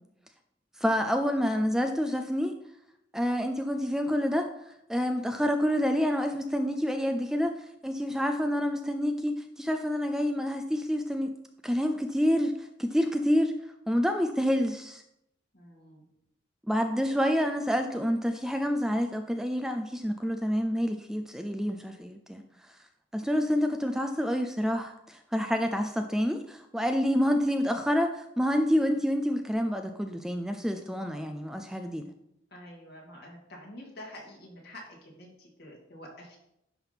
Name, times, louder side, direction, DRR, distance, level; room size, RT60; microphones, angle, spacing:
voice 1, 0.8-2.6 3.1-4.5 4.9-7.5 7.8-11.3 11.6-13.5 13.9-15.0 16.7-22.4 23.1-32.1, equal, 5° right, 5 dB, 0.4 m, -28 dB
voice 2, 15.5-16.1 30.8-31.1 32.5-36.4, left 1 dB, 55° left, -3 dB, 2.6 m, -48 dB
10.5 x 3.5 x 5.9 m, 0.80 s
head